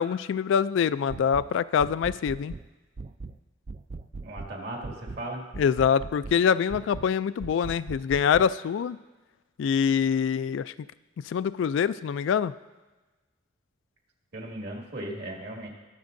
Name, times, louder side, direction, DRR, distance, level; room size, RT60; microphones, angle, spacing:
voice 1, 0.0-2.5 5.6-9.0 9.6-10.7 11.3-12.5, left 7 dB, 75° left, 16 dB, 0.3 m, -25 dB
sound 1, 1.1-1.5 1.8-2.7 3.0-3.4 3.7-4.5 4.8-5.2 5.5-6.4 6.7-7.1 7.4-8.5, right 3 dB, 35° right, 0.3 m, -39 dB
voice 2, 4.2-5.4 14.3-15.7, right 1 dB, 60° right, -1 dB, 2.1 m, -37 dB
21.5 x 7.2 x 2.6 m, 1.2 s
head